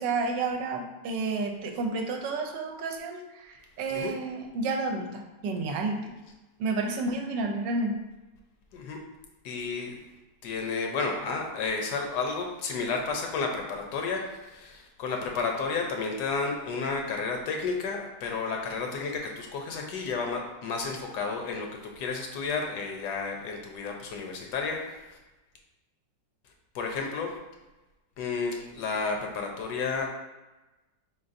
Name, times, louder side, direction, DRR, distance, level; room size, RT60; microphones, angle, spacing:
voice 1, 0.0-6.1 6.6-8.0, right 3 dB, 80° right, 3 dB, 1.2 m, -30 dB
voice 2, 9.4-10.0 10.4-21.7 22.0-25.2 26.7-27.4 28.2-30.1, left 4 dB, 75° left, 2 dB, 1.1 m, -32 dB
4.3 x 3.9 x 2.5 m, 1.1 s
omnidirectional pair, 2.0 m